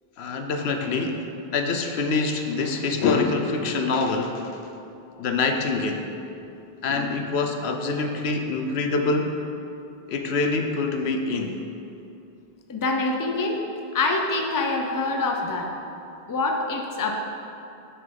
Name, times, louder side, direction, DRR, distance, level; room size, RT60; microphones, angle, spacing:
voice 1, 0.2-4.6 5.2-6.0 6.8-9.4 10.1-11.6, left 3 dB, 85° left, 5 dB, 0.9 m, -25 dB
voice 2, 12.7-13.6 13.9-15.7 16.3-17.1, left 3 dB, 25° left, 2 dB, 0.5 m, -25 dB
6.2 x 6.1 x 5.3 m, 2.8 s
omnidirectional pair, 1.0 m